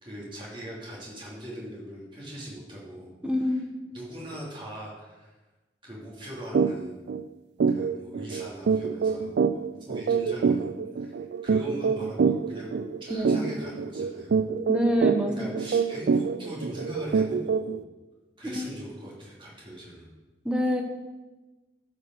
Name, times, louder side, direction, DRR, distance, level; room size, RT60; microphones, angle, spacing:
voice 1, 0.0-3.1 3.4-3.6 3.9-5.3 5.8-7.0 7.7-9.6 9.9-14.4 15.3-17.8 18.4-20.1, equal, 30° right, -5 dB, 2.6 m, -40 dB
voice 2, 3.2-3.7 13.1-13.5 14.7-15.6 18.4-18.7 20.4-20.8, equal, 5° right, 2 dB, 0.9 m, -27 dB
sound 1, 6.5-6.7 7.1-7.2 7.6-17.8, right 5 dB, 70° right, 0.3 m, -26 dB
13.0 x 5.2 x 4.6 m, 1.1 s
head